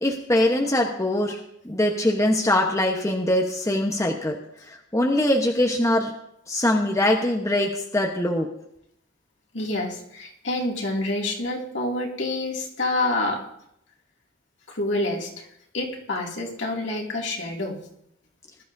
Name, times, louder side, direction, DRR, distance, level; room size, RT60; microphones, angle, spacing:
voice 1, 0.0-1.4 1.6-4.4 4.9-6.1 6.5-8.5, left 1 dB, 15° left, 1 dB, 1.1 m, -22 dB
voice 2, 9.5-13.4 14.7-15.5 15.7-17.8, left 2 dB, 65° left, -1 dB, 2.6 m, -27 dB
20.5 x 12.5 x 2.7 m, 0.76 s
head